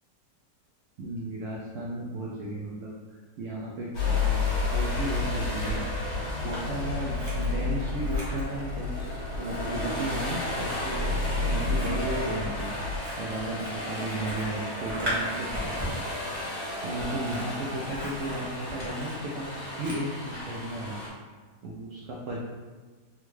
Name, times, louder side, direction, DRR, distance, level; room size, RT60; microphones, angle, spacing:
voice 1, 1.0-4.4 4.7-5.9 6.1-12.7 13.2-15.8 16.8-21.0 21.6-22.4, right 1 dB, 80° right, -4 dB, 0.6 m, -35 dB
sound 1, 3.9-21.1, left 1 dB, 60° left, 1.4 m, -36 dB
sound 2, 3.9-13.0, left 4 dB, 60° right, 1.3 m, -31 dB
Scissors, 5.3-6.6 6.9-20.6, equal, 30° right, 0.9 m, -39 dB
3.6 x 2.2 x 3.1 m, 1.4 s
omnidirectional pair, 1.9 m